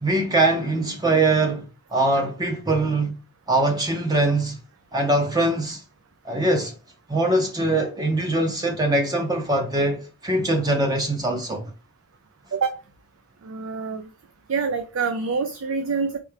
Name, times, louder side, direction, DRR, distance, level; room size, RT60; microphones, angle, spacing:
voice 1, 0.0-1.6 1.9-3.2 3.5-4.6 4.9-5.8 6.2-6.7 7.1-11.7, right 2 dB, 20° right, 0.7 m, -22 dB
voice 2, 13.4-14.1 14.5-16.2, right 5 dB, 65° right, 0.5 m, -26 dB
4.4 x 3.3 x 3.3 m
head